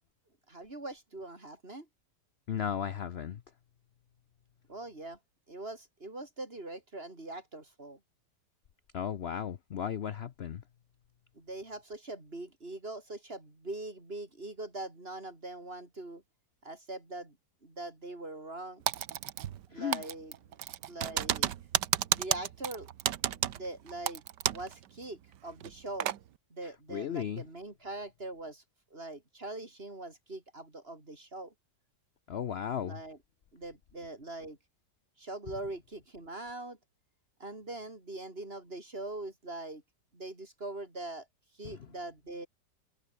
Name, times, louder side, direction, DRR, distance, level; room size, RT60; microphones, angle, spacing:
voice 1, 0.5-1.9 4.7-5.2 5.5-8.0 11.3-16.2 16.6-17.4 17.6-18.8 19.7-20.3 20.9-21.5 22.1-22.9 23.2-24.2 24.5-26.1 26.5-28.6 28.9-31.5 32.8-33.2 33.5-34.6 35.2-36.8 37.4-39.8 40.1-41.3 41.6-42.5, right 2 dB, 35° right, 5.2 m, -42 dB
voice 2, 2.5-3.4 8.9-10.6 19.7-20.0 26.6-27.4 32.3-33.0 41.6-41.8, left 8 dB, 55° left, 0.7 m, -35 dB
Typing, 18.9-19.7 19.9-24.7 25.0-25.1 25.6-26.2, right 11 dB, 80° right, 1.6 m, -31 dB
omnidirectional pair, 1.9 m